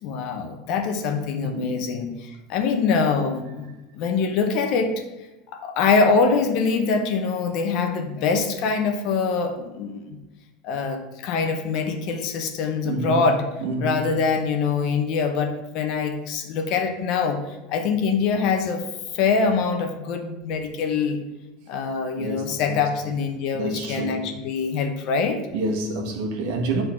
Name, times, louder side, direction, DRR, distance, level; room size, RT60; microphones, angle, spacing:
voice 1, 0.0-3.7 4.0-4.9 5.5-10.2 10.6-13.5 13.8-17.4 17.7-18.8 19.1-21.2 21.7-25.4, left 5 dB, 40° left, 0.9 m, -24 dB
voice 2, 1.4-1.8 12.8-13.2 13.6-14.1 22.2-22.8 23.5-24.3 25.5-26.8, right 3 dB, 50° right, 1.5 m, -28 dB
9.8 x 3.9 x 5.9 m
supercardioid pair, 175°, 0 cm